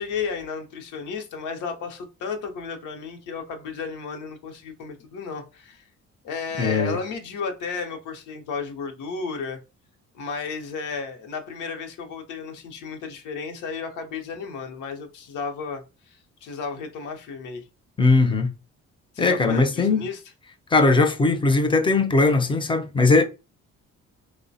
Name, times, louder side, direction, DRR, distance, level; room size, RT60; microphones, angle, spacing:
voice 1, 0.0-5.8 6.2-9.6 10.1-17.6 19.1-20.2, left 5 dB, 85° left, 0.7 m, -33 dB
voice 2, 6.6-7.0 18.0-18.5 19.2-20.1 20.7-23.2, left 3 dB, 15° left, 0.4 m, -19 dB
3.1 x 2.1 x 2.6 m
cardioid pair, 90°, 30 cm